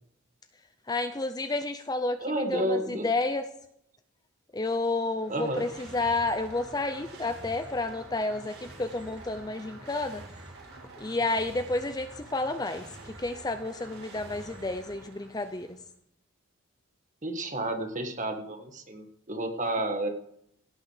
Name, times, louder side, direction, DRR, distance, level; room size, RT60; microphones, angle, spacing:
voice 1, 0.9-3.4 4.5-10.2 11.0-12.8 13.2-15.7, left 2 dB, 20° left, 9 dB, 0.6 m, -30 dB
voice 2, 2.2-3.1 5.3-5.7 17.2-20.1, right 1 dB, 35° right, 5 dB, 1.6 m, -31 dB
sound 1, 5.0-15.9, right 2 dB, 85° right, 5.0 m, -47 dB
17.0 x 6.3 x 6.5 m, 0.73 s
head